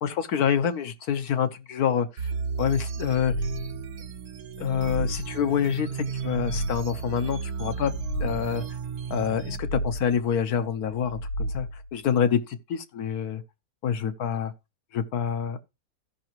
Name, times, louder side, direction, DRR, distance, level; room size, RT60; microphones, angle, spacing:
voice 1, 0.0-2.1 2.6-3.3 4.6-7.9 8.2-8.6 9.1-13.4 13.8-14.5 14.9-15.6, left 8 dB, 85° left, 1.4 m, -27 dB
sound 1, 2.2-9.6, right 6 dB, 85° right, 1.2 m, -34 dB
sound 2, 2.9-4.0 4.5-5.6 6.1-7.2 7.7-8.8 9.3-10.3 10.9-12.0, equal, 60° left, 1.1 m, -34 dB
16.0 x 5.8 x 3.0 m
omnidirectional pair, 1.5 m